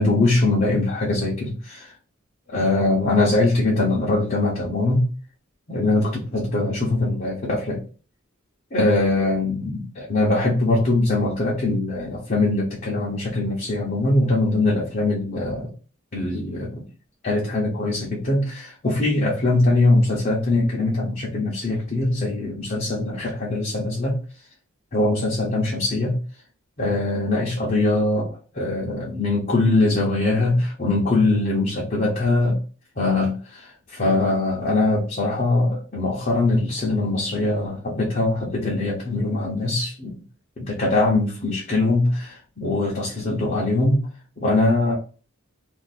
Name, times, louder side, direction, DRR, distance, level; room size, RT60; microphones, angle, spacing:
voice 1, 0.0-1.9 2.5-5.1 5.7-7.8 8.7-15.7 16.1-16.8 17.2-24.2 24.9-26.2 26.8-32.6 33.0-40.2 40.6-44.1 44.4-45.0, left 2 dB, 40° left, -4 dB, 0.8 m, -22 dB
2.6 x 2.5 x 4.0 m, 0.37 s
head